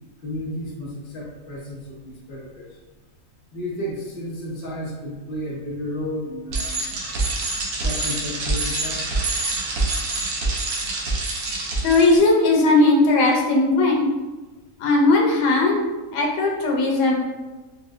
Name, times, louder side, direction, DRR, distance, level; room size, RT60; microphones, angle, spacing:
voice 1, 0.2-2.8 3.5-6.9 7.8-9.1, left 1 dB, 60° left, -4 dB, 0.6 m, -32 dB
Bicycle, 6.5-12.2, right 2 dB, 75° right, 1.1 m, -26 dB
voice 2, 11.8-14.1 14.8-15.8 16.1-17.1, left 2 dB, 90° left, -1 dB, 1.3 m, -18 dB
4.6 x 2.1 x 2.4 m, 1.2 s
omnidirectional pair, 1.7 m